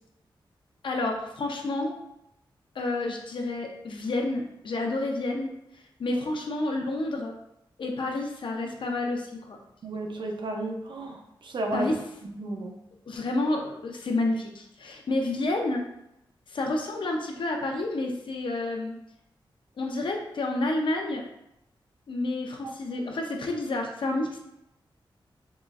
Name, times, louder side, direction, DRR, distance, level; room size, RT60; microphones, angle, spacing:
voice 1, 0.8-1.9 2.7-5.6 6.0-7.3 7.8-9.6 11.7-12.0 13.1-15.8 16.5-18.9 19.8-21.3 22.1-24.4, left 2 dB, 65° left, 2 dB, 0.6 m, -29 dB
voice 2, 9.8-11.9 12.2-12.8 22.6-22.7, right 2 dB, 60° right, 3 dB, 0.5 m, -33 dB
3.8 x 3.0 x 2.4 m, 0.84 s
wide cardioid pair, 130°, 9 cm